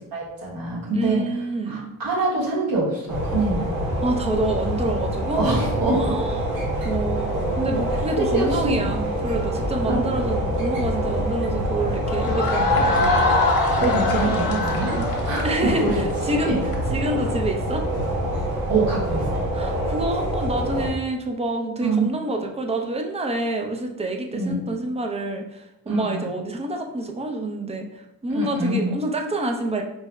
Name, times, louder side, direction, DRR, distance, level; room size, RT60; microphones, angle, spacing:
voice 1, 0.1-1.2 1.7-3.7 5.3-6.1 8.2-8.7 9.9-10.0 13.8-14.9 15.2-16.0 16.3-16.6 18.7-19.2 21.8-22.1 24.3-24.6 25.9-26.3 28.3-28.9, right 3 dB, 70° right, -5 dB, 1.3 m, -24 dB
voice 2, 0.9-1.9 4.0-5.5 5.9-6.5 6.8-13.1 14.3-14.4 14.9-15.1 15.4-16.5 16.9-17.8 19.5-29.8, right 1 dB, 20° right, 3 dB, 0.4 m, -27 dB
sound 1, 3.1-20.9, right 1 dB, 90° right, 1.4 m, -26 dB
sound 2, 12.0-16.8, left 3 dB, 70° left, 0.8 m, -23 dB
4.6 x 2.0 x 3.2 m, 0.90 s
cardioid pair, 110°, 36 cm